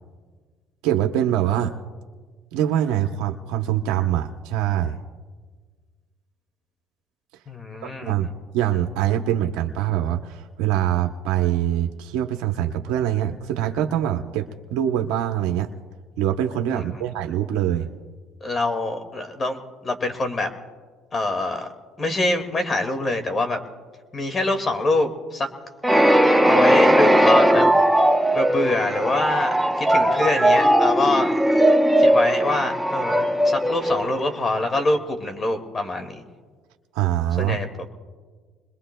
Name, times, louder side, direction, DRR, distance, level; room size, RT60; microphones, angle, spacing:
voice 1, 0.8-1.7 2.5-5.0 8.0-15.7 16.2-17.9 36.9-37.6, right 11 dB, 85° right, 4 dB, 0.8 m, -24 dB
voice 2, 7.5-8.1 16.7-17.0 18.4-20.5 21.1-21.7 22.0-23.6 24.1-25.5 26.5-27.7 28.3-31.3 32.0-36.2 37.4-37.9, left 2 dB, 35° left, 6 dB, 2.0 m, -25 dB
sound 1, 25.8-34.6, right 1 dB, 5° right, 0.9 m, -18 dB
28.0 x 21.5 x 2.2 m, 1.5 s
supercardioid pair, 95°, 0 cm